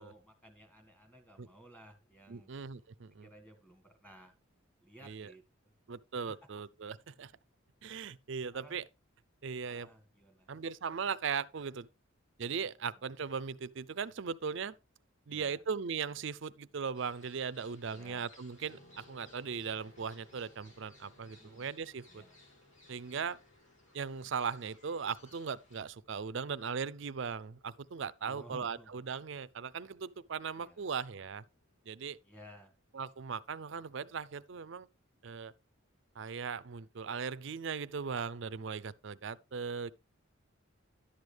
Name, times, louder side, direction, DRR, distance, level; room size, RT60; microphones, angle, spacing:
voice 1, 0.0-2.5 3.2-4.3 4.8-5.4 8.5-8.8 9.6-10.5 15.3-15.6 17.9-18.3 21.4-21.7 22.1-22.4 28.2-29.0 30.6-30.9 32.2-32.7, equal, 5° left, 1.7 m, -56 dB
voice 2, 2.3-3.3 5.0-5.3 5.9-7.3 7.8-8.8 9.4-9.9 10.5-11.9 12.4-14.8 15.3-22.2 22.9-23.4 23.9-31.4 31.9-32.2 32.9-34.9 35.2-35.5 36.2-39.9, right 6 dB, 60° right, 0.5 m, -38 dB
sound 1, 16.9-25.8, left 2 dB, 70° left, 2.6 m, -63 dB
sound 2, 18.6-33.3, left 2 dB, 45° left, 3.7 m, -67 dB
11.0 x 7.9 x 3.4 m
head